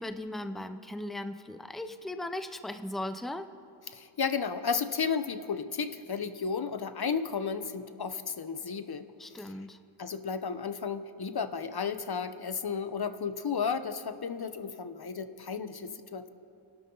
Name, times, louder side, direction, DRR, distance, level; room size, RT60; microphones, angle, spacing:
voice 1, 0.0-3.5 9.2-9.8, left 1 dB, ahead, 8 dB, 0.7 m, -37 dB
voice 2, 3.9-9.1 9.4-9.5 10.0-16.3, left 6 dB, 50° left, 10 dB, 1.0 m, -33 dB
30.0 x 12.0 x 4.0 m, 2.6 s
wide cardioid pair, 65°, 50 cm